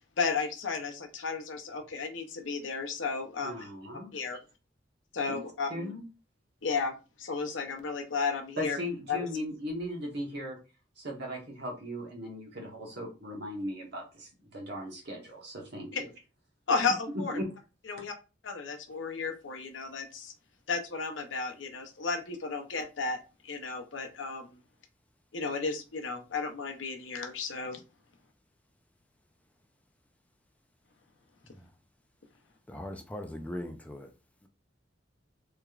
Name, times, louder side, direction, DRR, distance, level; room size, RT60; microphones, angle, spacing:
voice 1, 0.2-3.6 4.1-4.4 5.1-5.9 6.6-8.8 9.1-9.3 15.9-16.0 16.7-17.4 17.9-18.1 18.4-20.3 20.7-23.2 23.4-24.6 25.3-27.8, left 4 dB, 85° left, 0.7 m, -33 dB
voice 2, 3.4-4.1 5.3-5.4 5.7-6.0 8.6-10.6 11.0-15.9 17.3-17.5, equal, 60° right, 1.1 m, -38 dB
voice 3, 32.7-34.1 34.4-34.5, left 1 dB, 10° left, 0.4 m, -40 dB
3.4 x 3.0 x 2.4 m
head